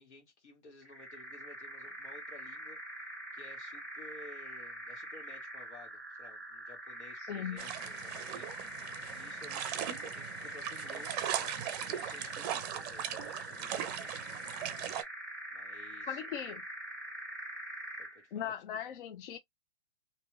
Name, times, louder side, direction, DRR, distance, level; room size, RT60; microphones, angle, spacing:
voice 1, 0.0-8.8 9.1-11.5 11.9-14.1 15.5-16.5 18.0-18.5, left 3 dB, 75° left, 1.6 m, -55 dB
sound 1, 0.8-18.2, right 1 dB, ahead, 0.8 m, -44 dB
voice 2, 7.2-7.7 16.1-16.6 18.3-19.4, left 9 dB, 50° left, 0.4 m, -39 dB
sound 2, 7.6-15.0, right 10 dB, 35° right, 0.5 m, -39 dB
2.7 x 2.3 x 3.1 m
hypercardioid pair, 130°, 35 cm